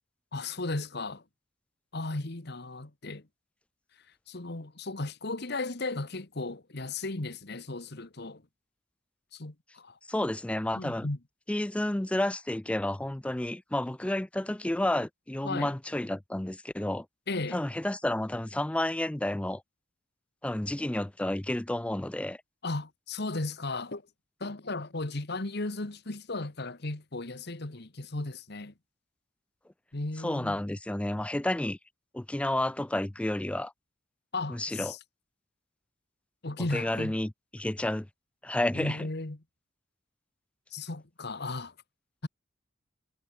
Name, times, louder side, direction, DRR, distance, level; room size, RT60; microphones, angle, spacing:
voice 1, 0.3-1.2 1.9-3.3 4.3-8.4 9.3-10.0 10.8-11.2 15.4-15.7 17.3-17.6 22.6-24.0 24.4-28.7 29.9-30.6 34.3-35.0 36.4-37.2 38.7-39.4 40.7-41.7 42.2-42.3, left 2 dB, 60° left, 1.5 m, -35 dB
voice 2, 10.1-11.1 11.5-17.1 17.5-19.6 20.4-22.4 30.2-31.8 32.1-33.7 34.5-34.9 36.7-38.1 38.4-39.1, left 1 dB, 5° left, 0.4 m, -31 dB
head